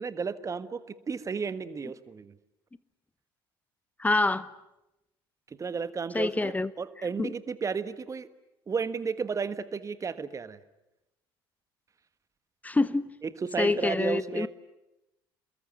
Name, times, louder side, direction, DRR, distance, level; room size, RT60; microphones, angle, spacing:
voice 1, 0.0-2.3 5.6-8.3 8.7-10.6 13.4-14.5, right 5 dB, 25° right, 14 dB, 1.4 m, -33 dB
voice 2, 4.0-4.5 6.1-6.7 7.2-7.3 12.6-13.1 13.6-14.5, left 2 dB, 10° left, 17 dB, 1.0 m, -26 dB
28.5 x 22.0 x 9.1 m, 0.92 s
figure-of-eight pair, 60°, 12 cm